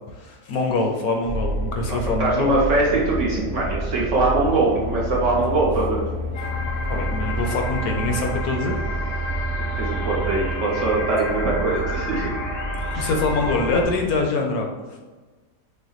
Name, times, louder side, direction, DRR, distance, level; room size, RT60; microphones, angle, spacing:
voice 1, 0.2-2.5 5.4-5.5 6.9-8.7 12.9-14.7, left 3 dB, 70° left, 2 dB, 1.0 m, -24 dB
sound 1, 1.2-14.2, right 1 dB, 85° right, 1.3 m, -29 dB
voice 2, 1.9-6.1 9.8-12.3 12.9-13.1, right 2 dB, 60° right, -4 dB, 0.9 m, -22 dB
sound 2, 6.3-13.8, left 3 dB, 85° left, 1.5 m, -32 dB
6.2 x 2.1 x 3.0 m, 1.3 s
omnidirectional pair, 1.8 m